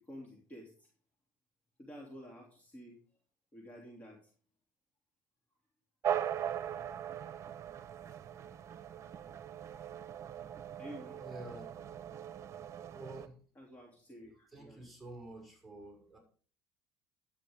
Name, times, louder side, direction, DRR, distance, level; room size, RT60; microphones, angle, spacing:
voice 1, 0.1-0.9 1.8-3.0 3.5-4.2 10.8-11.2 13.5-14.8, equal, 25° left, -1 dB, 3.1 m, -50 dB
sound 1, 6.0-13.3, right 9 dB, 45° right, 1.0 m, -40 dB
voice 2, 11.2-11.7 12.9-13.4 14.5-16.2, right 2 dB, ahead, 0 dB, 6.6 m, -48 dB
12.5 x 9.3 x 3.7 m, 0.42 s
supercardioid pair, 95°, 7 cm